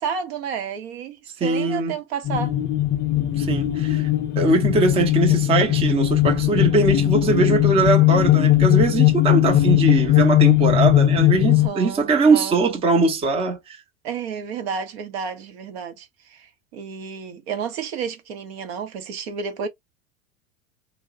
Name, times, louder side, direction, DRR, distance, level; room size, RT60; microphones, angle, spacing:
voice 1, 0.0-2.6 11.5-12.6 14.0-19.7, right 6 dB, 50° right, 0.7 m, -31 dB
voice 2, 1.4-1.9 3.3-4.1 4.4-13.8, right 3 dB, 15° right, 0.6 m, -21 dB
sound 1, 2.2-11.7, left 14 dB, 25° left, 0.4 m, -18 dB
2.2 x 2.1 x 3.4 m
figure-of-eight pair, 85°, 40 cm